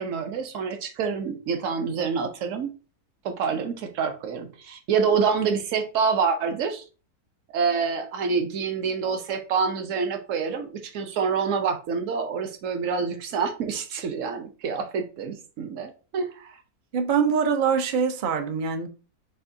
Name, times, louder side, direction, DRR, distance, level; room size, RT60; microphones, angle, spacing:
voice 1, 0.0-2.7 3.2-6.8 7.5-16.6, right 5 dB, 60° right, 0.9 m, -27 dB
voice 2, 16.9-18.9, right 6 dB, 80° right, 0.4 m, -23 dB
6.5 x 2.7 x 2.6 m
omnidirectional pair, 1.7 m